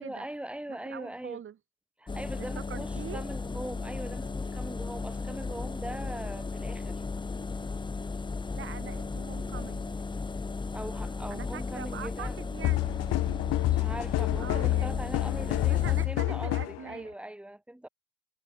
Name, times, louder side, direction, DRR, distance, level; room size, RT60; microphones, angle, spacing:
voice 1, 0.0-1.4 2.0-7.0 10.7-12.4 13.6-17.9, right 1 dB, 5° right, 5.6 m, -41 dB
voice 2, 0.7-1.6 2.4-3.2 8.5-10.0 11.3-12.8 14.4-15.2 15.6-17.1, right 9 dB, 40° right, 5.0 m, -43 dB
Engine, 2.1-16.1, left 4 dB, 15° left, 1.3 m, -35 dB
sound 1, 12.6-16.8, left 18 dB, 50° left, 0.8 m, -28 dB
hypercardioid pair, 85°, 32 cm